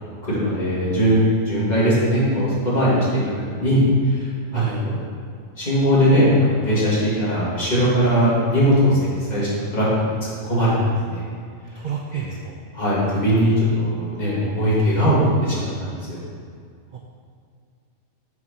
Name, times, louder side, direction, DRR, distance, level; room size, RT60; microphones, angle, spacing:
voice 1, 0.0-3.2 3.5-3.8 4.2-4.3 4.5-4.9 5.6-9.0 9.3-9.9 10.4-10.7 11.1-11.2 12.1-12.3 12.7-16.2, equal, 30° left, -8 dB, 2.0 m, -20 dB
voice 2, 4.5-4.8 11.7-12.6 16.9-17.0, right 7 dB, 60° right, 1 dB, 0.5 m, -30 dB
6.5 x 4.2 x 5.8 m, 2.2 s
omnidirectional pair, 1.4 m